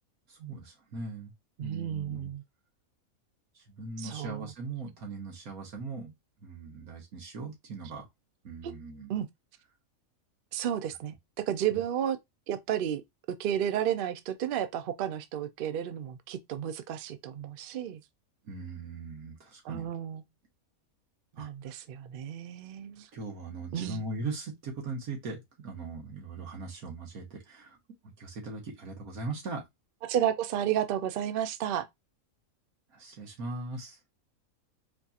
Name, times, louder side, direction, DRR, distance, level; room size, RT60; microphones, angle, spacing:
voice 1, 0.3-1.3 1.6-2.3 3.5-6.1 6.4-8.1 8.4-9.2 11.7-11.8 18.4-19.9 21.4-21.8 23.1-27.8 28.0-29.6 32.9-34.0, right 3 dB, 90° right, 1.8 m, -40 dB
voice 2, 1.6-2.4 4.0-4.5 8.6-8.7 9.1-9.3 10.5-12.2 12.5-13.0 13.4-18.0 19.6-20.2 21.4-23.1 23.7-24.0 30.0-31.9, right 10 dB, 65° right, 0.5 m, -32 dB
4.4 x 2.7 x 2.4 m
omnidirectional pair, 1.5 m